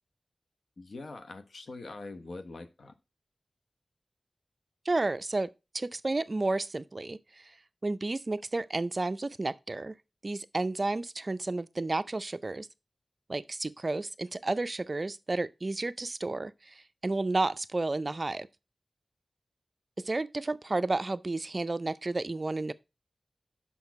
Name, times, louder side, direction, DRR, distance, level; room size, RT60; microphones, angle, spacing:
voice 1, 0.8-2.9, left 3 dB, 80° left, 0.9 m, -43 dB
voice 2, 4.9-7.2 7.8-9.9 10.2-12.7 13.3-16.7 17.0-18.5 20.0-22.7, right 2 dB, 45° right, 0.4 m, -31 dB
6.3 x 5.8 x 4.6 m
wide cardioid pair, 65°, 0 cm